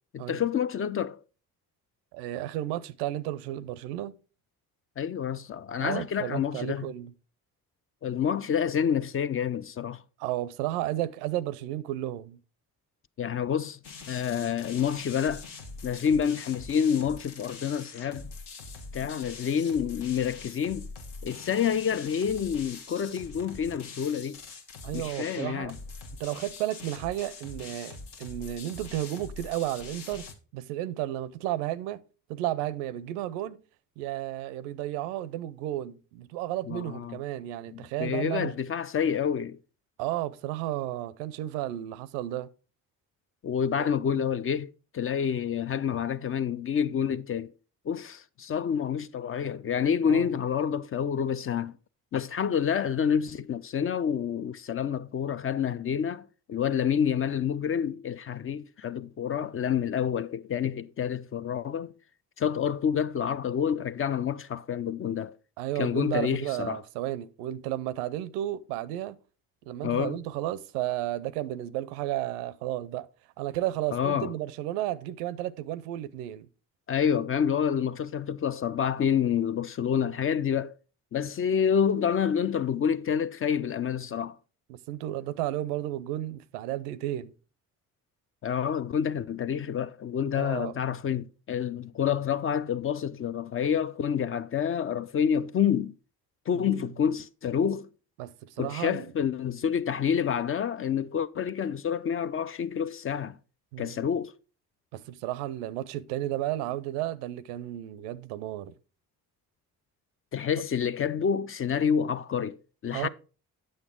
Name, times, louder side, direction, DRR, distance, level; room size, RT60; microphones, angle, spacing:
voice 1, 0.1-1.2 5.0-6.9 8.0-10.0 13.2-13.8 14.1-15.5 15.8-18.2 18.9-20.9 21.2-24.4 24.9-25.8 36.7-37.2 37.7-39.6 43.4-47.5 47.9-51.7 52.1-61.9 62.4-65.3 65.8-66.8 69.8-70.2 73.9-74.3 76.9-80.7 81.1-84.4 88.4-96.0 96.5-97.9 98.6-103.4 103.8-104.3 110.3-113.1, left 8 dB, 30° left, 0.4 m, -28 dB
voice 2, 2.1-4.2 5.8-7.1 10.2-12.4 24.8-25.7 26.2-30.3 30.5-32.0 32.3-33.6 34.0-38.5 40.0-42.5 43.8-43.9 50.0-50.3 65.6-69.2 69.7-73.1 73.4-76.5 84.7-87.3 90.3-90.7 96.5-96.9 98.2-99.1 103.7-104.1 104.9-108.7 112.9-113.1, right 14 dB, 85° right, 0.5 m, -33 dB
sound 1, 13.8-30.3, left 4 dB, 65° left, 1.2 m, -44 dB
8.6 x 6.3 x 3.6 m
hypercardioid pair, 45°, 45 cm